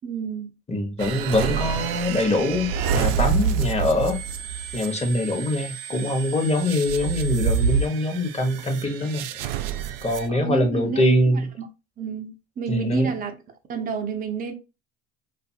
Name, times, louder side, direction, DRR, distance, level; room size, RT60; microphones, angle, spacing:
voice 1, 0.0-0.5 10.3-11.0 11.6-11.7 12.0-13.3 13.7-14.5, right 5 dB, 25° right, 0.6 m, -29 dB
voice 2, 0.7-4.2 4.7-9.5 10.0-11.5 12.7-13.1, left 1 dB, 15° left, 0.9 m, -23 dB
sound 1, 1.0-10.3, right 6 dB, 75° right, 0.5 m, -27 dB
2.6 x 2.4 x 2.6 m
hypercardioid pair, 80°, 38 cm